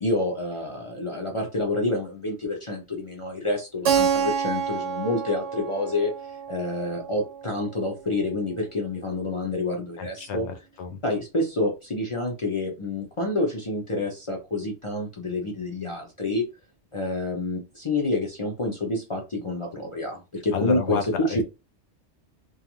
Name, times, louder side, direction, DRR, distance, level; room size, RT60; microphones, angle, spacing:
voice 1, 0.0-6.1 6.5-10.5 11.0-16.4 16.9-21.4, left 2 dB, 45° left, 0.4 m, -28 dB
Keyboard (musical), 3.8-8.4, right 7 dB, 85° right, 0.9 m, -28 dB
voice 2, 10.0-11.0 20.5-21.0 21.3-21.4, left 7 dB, 70° left, 0.9 m, -30 dB
2.5 x 2.3 x 2.8 m
omnidirectional pair, 1.2 m